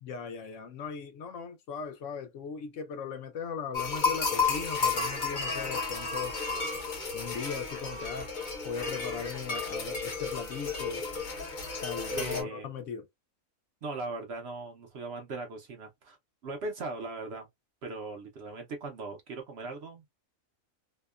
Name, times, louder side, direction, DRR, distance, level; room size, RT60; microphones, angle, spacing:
voice 1, 0.0-6.4 7.1-8.3 8.6-11.0 11.8-13.1, left 6 dB, 65° left, 0.9 m, -38 dB
sound 1, 3.7-12.4, left 4 dB, 45° left, 0.7 m, -32 dB
voice 2, 12.1-12.7 13.8-16.2 16.4-17.5 17.8-20.0, right 3 dB, 60° right, 0.8 m, -39 dB
2.8 x 2.1 x 2.3 m
omnidirectional pair, 1.4 m